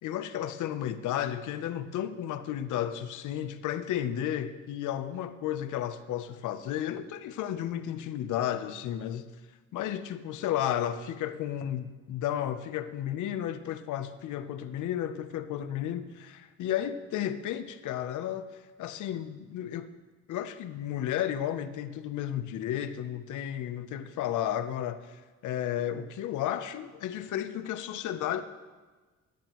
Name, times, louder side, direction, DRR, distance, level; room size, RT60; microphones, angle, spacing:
voice 1, 0.0-9.3 9.7-16.1 16.6-19.9 20.3-28.4, left 11 dB, 80° left, 11 dB, 0.7 m, -33 dB
17.0 x 10.5 x 3.0 m, 1.3 s
cardioid pair, 90°, 30 cm